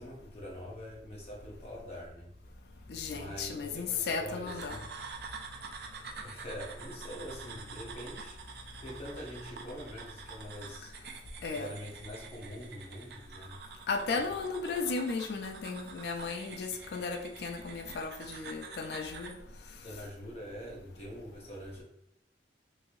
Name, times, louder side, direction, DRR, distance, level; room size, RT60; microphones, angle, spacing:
voice 1, 0.0-2.3 3.1-4.9 6.2-8.4 8.8-10.9 11.5-13.6 19.8-21.8, equal, 35° left, 0.8 m, -44 dB
voice 2, 2.9-4.8 11.4-11.7 13.9-19.4, left 4 dB, 65° left, 0.3 m, -35 dB
sound 1, 4.5-19.4, right 5 dB, 60° right, 0.4 m, -47 dB
3.1 x 2.7 x 2.5 m
head